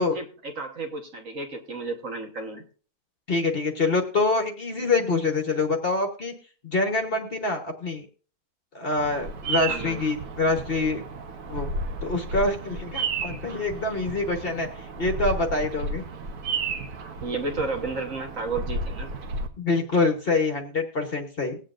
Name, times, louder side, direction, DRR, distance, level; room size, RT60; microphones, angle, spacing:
voice 1, 0.0-2.6 9.7-10.0 17.2-19.1, right 3 dB, 55° right, 2 dB, 1.7 m, -32 dB
voice 2, 3.3-6.3 6.6-8.0 8.7-11.0 11.5-11.7 12.0-14.7 15.0-16.0 19.6-21.6, left 3 dB, 40° left, 4 dB, 1.2 m, -25 dB
Bird vocalization bird call bird song, 9.0-19.5, right 3 dB, 80° right, 1.4 m, -33 dB
20.0 x 8.1 x 2.5 m, 0.41 s
omnidirectional pair, 1.6 m